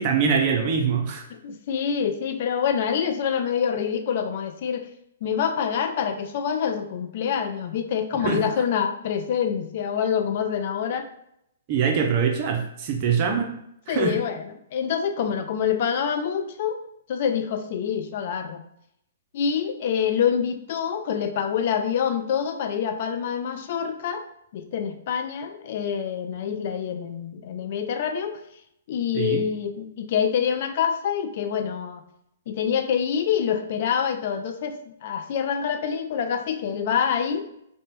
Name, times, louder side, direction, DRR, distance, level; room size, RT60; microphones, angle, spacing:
voice 1, 0.0-1.2 8.2-8.4 11.7-13.6 13.9-14.2 29.1-29.4, right 6 dB, 40° right, 2 dB, 0.5 m, -23 dB
voice 2, 1.4-4.9 5.2-11.1 13.9-16.8 17.1-18.6 19.3-24.2 24.5-28.4 28.9-32.0 32.5-37.4, left 7 dB, 50° left, 7 dB, 0.3 m, -26 dB
2.6 x 2.1 x 3.0 m, 0.74 s
figure-of-eight pair, 120°, 0 cm